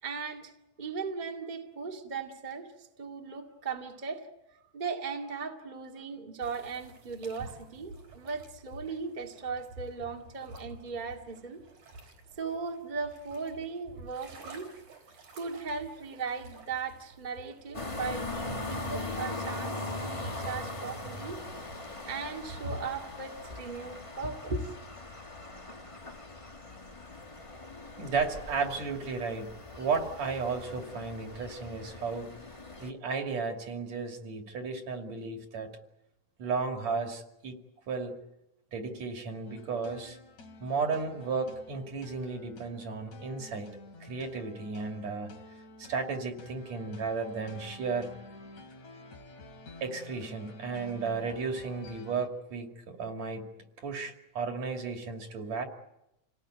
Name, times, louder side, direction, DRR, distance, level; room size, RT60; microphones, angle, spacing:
voice 1, 0.0-0.5 0.8-4.3 4.5-11.6 12.4-14.7 15.3-21.4 22.0-24.7, right 4 dB, 15° right, 2 dB, 1.8 m, -38 dB
sound 1, 6.4-23.7, right 1 dB, 85° right, 5.5 m, -49 dB
sound 2, 17.7-32.9, left 2 dB, 25° left, 0.6 m, -40 dB
voice 2, 28.0-32.3 32.8-35.7 36.4-37.6 37.9-38.2 38.7-40.2 40.6-43.8 44.0-45.3 45.8-48.1 49.8-53.5 53.8-55.7, right 4 dB, 65° right, 3 dB, 3.9 m, -34 dB
sound 3, 39.5-52.3, left 2 dB, 65° left, 3.6 m, -50 dB
28.5 x 18.5 x 9.3 m, 0.89 s
omnidirectional pair, 3.4 m